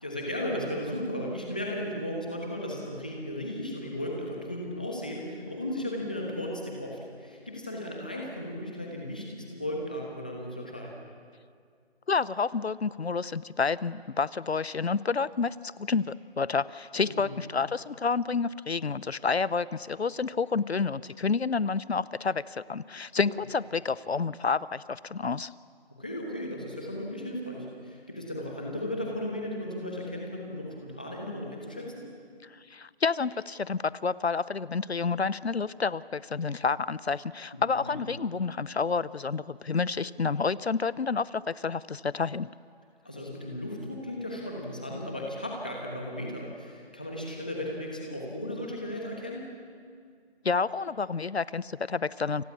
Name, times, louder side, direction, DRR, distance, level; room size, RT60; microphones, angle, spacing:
voice 1, 0.0-11.0 17.0-17.4 26.0-32.0 37.8-38.0 43.0-49.5, left 1 dB, 10° left, -1 dB, 1.2 m, -35 dB
voice 2, 12.1-25.5 32.5-42.5 50.4-52.4, left 5 dB, 75° left, 19 dB, 0.8 m, -29 dB
29.5 x 26.0 x 7.1 m, 2.1 s
figure-of-eight pair, 175°, 32 cm